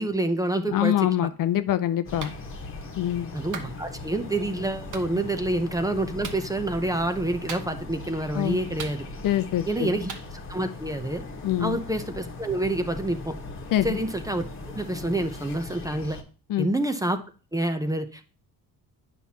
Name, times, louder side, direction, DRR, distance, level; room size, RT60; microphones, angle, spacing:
voice 1, 0.0-0.9 3.3-9.0 9.7-10.1 10.5-11.2 11.6-13.3 13.8-14.5 14.7-16.2 16.6-17.2 17.5-18.2, right 1 dB, 10° right, 8 dB, 0.6 m, -27 dB
voice 2, 0.7-2.3 3.0-3.3 8.3-8.6 9.2-10.0 11.4-11.8 13.7-14.0 16.5-16.7, left 12 dB, 55° left, 12 dB, 0.6 m, -25 dB
sound 1, 2.0-16.2, left 2 dB, 30° left, 1.3 m, -39 dB
Clapping, 2.2-2.4 3.5-3.7 4.9-5.1 6.2-6.4 7.5-7.9 8.8-9.4 10.1-10.3, right 6 dB, 50° right, 1.1 m, -38 dB
9.2 x 5.9 x 2.8 m, 0.37 s
cardioid pair, 115°, 39 cm